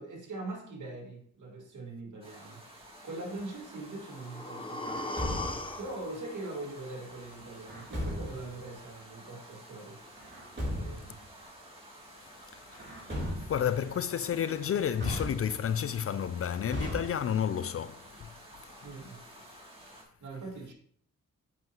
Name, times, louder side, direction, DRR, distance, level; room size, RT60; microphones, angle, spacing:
voice 1, 0.0-2.6 3.0-5.5 5.8-10.0 10.6-11.2 13.1-13.4 18.8-19.2 20.2-20.7, right 2 dB, 65° right, 2.2 m, -42 dB
sound 1, 2.2-20.0, right 1 dB, 15° right, 2.6 m, -52 dB
sound 2, 3.8-7.8 8.1-8.2, left 2 dB, 15° left, 0.7 m, -40 dB
Truck, 4.9-5.8 7.7-8.5 10.2-11.1 12.7-13.8 15.0-15.8 16.7-17.6, equal, 35° right, 3.2 m, -36 dB
voice 2, 12.2-18.4 18.7-18.8, left 8 dB, 45° left, 0.4 m, -32 dB
7.7 x 5.6 x 2.9 m
cardioid pair, 60°, 33 cm